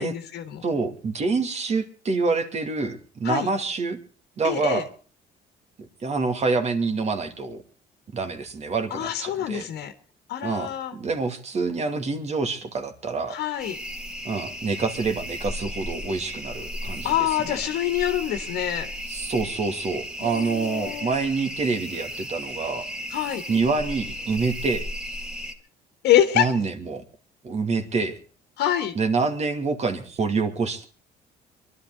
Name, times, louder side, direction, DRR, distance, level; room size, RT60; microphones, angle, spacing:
voice 1, 0.0-0.6 3.2-3.5 4.4-4.8 8.9-9.9 10.3-10.9 13.3-13.8 17.0-18.9 20.2-21.1 23.1-23.4 26.0-26.5 28.6-29.0, left 11 dB, 80° left, 7 dB, 1.6 m, -25 dB
voice 2, 0.6-4.0 4.4-4.9 6.0-7.6 8.1-9.7 10.4-13.4 14.2-17.6 19.1-22.9 23.5-24.9 26.3-27.0 27.4-28.2 29.0-30.8, right 4 dB, 40° right, 8 dB, 2.5 m, -26 dB
sound 1, 13.6-25.5, equal, 5° right, 2.0 m, -35 dB
24.0 x 12.0 x 4.0 m, 0.38 s
cardioid pair, 110°, 17 cm